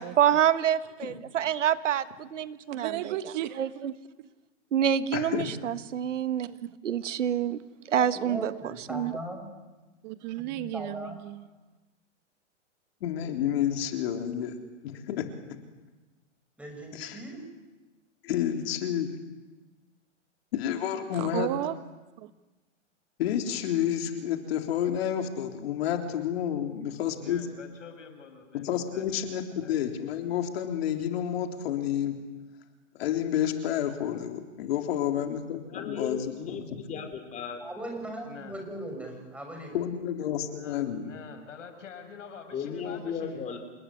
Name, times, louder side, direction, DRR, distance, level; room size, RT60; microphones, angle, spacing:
voice 1, 0.0-3.1 3.6-3.9 4.7-7.6 7.9-9.1, right 9 dB, 75° right, 13 dB, 1.5 m, -27 dB
voice 2, 2.7-3.9 4.2-4.3 10.0-11.5 21.1-21.8 22.2-22.3, right 14 dB, 35° right, 12 dB, 1.1 m, -34 dB
voice 3, 5.1-5.5 13.0-14.6 14.8-15.3 16.9-17.2 18.2-19.2 20.5-21.5 23.2-27.4 28.5-32.2 33.0-36.6 39.7-41.1, left 10 dB, 55° left, 5 dB, 3.8 m, -30 dB
voice 4, 8.0-9.4 10.4-11.2 16.6-17.4 37.6-39.8, right 1 dB, 5° right, 2 dB, 6.7 m, -39 dB
voice 5, 27.2-29.2 29.6-29.9 38.2-38.5 40.5-43.4, left 6 dB, 80° left, 7 dB, 6.5 m, -46 dB
voice 6, 35.7-37.6 42.5-43.6, left 6 dB, 20° left, 5 dB, 4.5 m, -36 dB
28.5 x 20.0 x 9.9 m, 1.2 s
hypercardioid pair, 140°, 37 cm